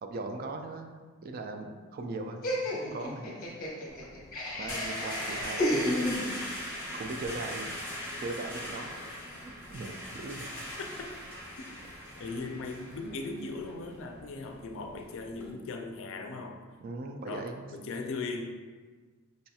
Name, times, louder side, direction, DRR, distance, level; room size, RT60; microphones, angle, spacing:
voice 1, 0.0-2.5 2.8-3.3 4.6-6.1 6.9-7.7 8.2-10.5 16.8-17.7, right 2 dB, 45° right, 5 dB, 0.3 m, -39 dB
Laughter, 2.4-6.7, left 1 dB, 45° left, 0.8 m, -32 dB
sound 1, 3.9-15.5, equal, 10° right, 0.8 m, -41 dB
voice 2, 5.7-6.2 9.1-9.2 12.2-16.6 17.2-18.6, left 3 dB, 65° left, 3 dB, 0.4 m, -38 dB
5.1 x 2.7 x 2.3 m, 1.4 s
head